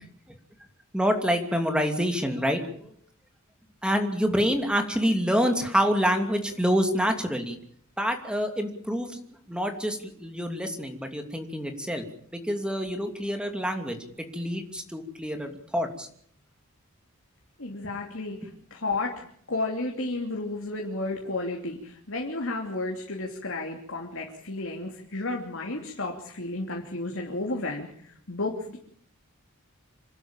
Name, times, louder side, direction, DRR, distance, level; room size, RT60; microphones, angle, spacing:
voice 1, 0.9-2.9 3.8-7.6 8.0-9.2 9.5-12.0 12.3-16.1, equal, 5° right, 5 dB, 2.8 m, -27 dB
voice 2, 17.6-28.8, left 2 dB, 65° left, 1 dB, 3.1 m, -32 dB
27.0 x 12.5 x 8.9 m, 0.62 s
head